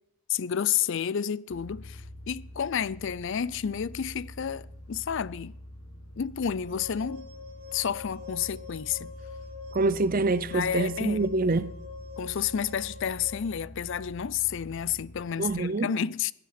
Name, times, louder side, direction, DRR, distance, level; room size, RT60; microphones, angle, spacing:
voice 1, 0.3-5.6 6.2-7.3 7.7-9.1 10.4-11.3 12.2-16.3, left 8 dB, 60° left, 0.4 m, -30 dB
sound 1, 1.5-15.5, equal, 30° left, 3.2 m, -46 dB
sound 2, 6.6-13.3, left 4 dB, 70° right, 2.3 m, -44 dB
voice 2, 9.7-11.7 15.4-15.9, right 3 dB, 40° right, 0.6 m, -26 dB
17.0 x 10.0 x 5.8 m
head